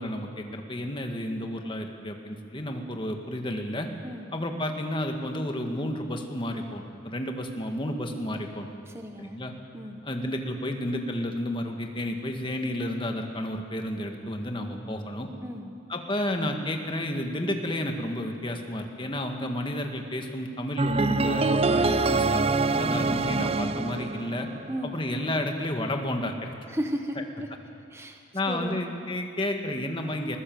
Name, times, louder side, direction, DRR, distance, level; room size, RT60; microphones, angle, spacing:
voice 1, 0.0-3.9 4.3-8.7 9.2-9.5 10.0-15.3 15.9-22.5 22.8-24.5 24.8-26.5 28.3-30.4, left 1 dB, 25° left, 3 dB, 1.8 m, -31 dB
voice 2, 4.0-4.3 8.9-9.4 9.7-10.0 15.4-15.7 22.7-23.0 24.7-25.0 26.7-27.5 27.9-28.2 28.5-28.8, equal, 15° right, 4 dB, 1.3 m, -35 dB
sound 1, 20.8-24.9, right 3 dB, 30° right, 0.6 m, -25 dB
20.5 x 20.0 x 7.8 m, 2.4 s
head